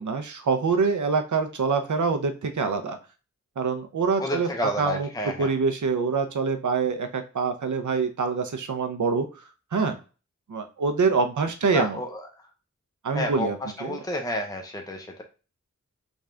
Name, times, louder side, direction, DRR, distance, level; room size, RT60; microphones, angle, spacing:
voice 1, 0.0-3.0 3.6-9.4 9.7-10.0 10.5-12.0 13.0-14.0, right 4 dB, 75° right, 7 dB, 0.6 m, -25 dB
voice 2, 4.2-5.5 11.7-12.1 13.1-13.5 13.8-15.2, left 1 dB, 10° left, 2 dB, 0.7 m, -30 dB
3.5 x 2.5 x 3.3 m, 0.34 s
cardioid pair, 40°, 30 cm